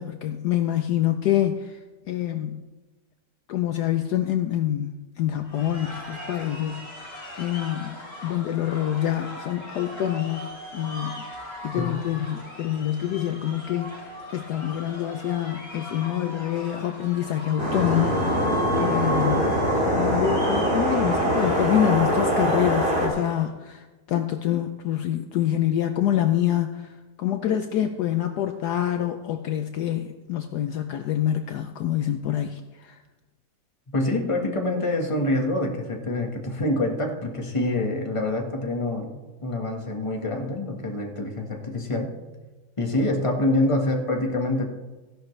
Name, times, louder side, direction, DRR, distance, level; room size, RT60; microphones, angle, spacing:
voice 1, 0.0-1.8 2.1-2.6 3.5-7.0 7.4-8.0 8.2-11.3 11.6-14.0 14.3-18.4 18.8-19.5 19.9-33.0, left 11 dB, 70° left, 7 dB, 1.1 m, -26 dB
sound 1, 5.4-23.5, equal, 55° left, 4.8 m, -38 dB
sound 2, 17.6-23.1, equal, 30° right, 2.7 m, -23 dB
voice 2, 33.9-39.1 39.4-42.1 42.8-44.7, left 1 dB, 20° left, 2 dB, 1.4 m, -26 dB
15.5 x 11.5 x 3.2 m, 1.2 s
omnidirectional pair, 2.0 m